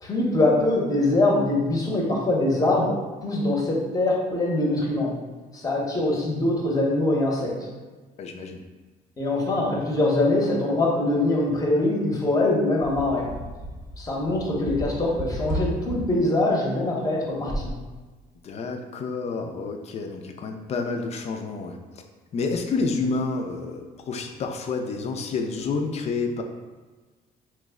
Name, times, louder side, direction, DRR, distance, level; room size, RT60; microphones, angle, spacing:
voice 1, 0.0-5.2 5.5-7.6 9.2-13.3 14.0-17.7, left 2 dB, 20° left, -2 dB, 0.7 m, -23 dB
voice 2, 8.2-8.6 18.4-21.8 22.3-26.4, left 4 dB, 40° left, 4 dB, 0.4 m, -29 dB
sound 1, 12.8-16.0 17.3-17.7, right 1 dB, 15° right, 0.7 m, -33 dB
3.0 x 2.0 x 3.5 m, 1.3 s
cardioid pair, 110°, 17 cm